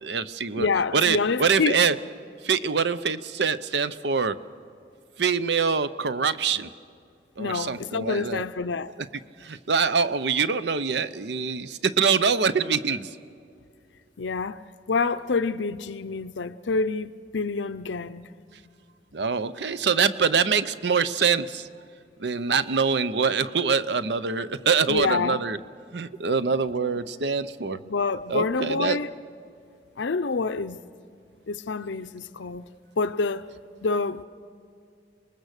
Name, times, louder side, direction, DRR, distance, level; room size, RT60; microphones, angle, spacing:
voice 1, 0.0-0.7 0.9-1.9 2.4-4.3 5.2-6.7 7.4-8.4 9.4-13.1 19.1-21.7 22.2-25.6 25.9-27.8 28.3-29.0, right 5 dB, 65° right, 0.7 m, -24 dB
voice 2, 0.6-1.8 7.4-8.9 14.2-14.6 14.9-18.3 24.9-25.4 27.8-29.1 30.0-30.8 31.5-32.6 33.0-33.5 33.8-34.2, left 4 dB, 80° left, 0.6 m, -27 dB
26.5 x 20.5 x 6.6 m
head